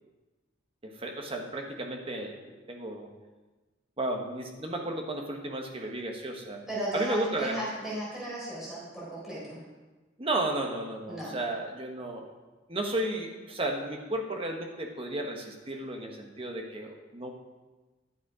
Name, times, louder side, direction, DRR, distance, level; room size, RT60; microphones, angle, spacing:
voice 1, 0.8-3.1 4.0-6.6 6.9-7.6 10.2-12.3 12.7-17.3, right 1 dB, 30° right, 2 dB, 1.3 m, -33 dB
voice 2, 6.7-9.6 11.1-11.3, right 1 dB, ahead, -7 dB, 4.2 m, -35 dB
11.5 x 7.3 x 5.1 m, 1.2 s
head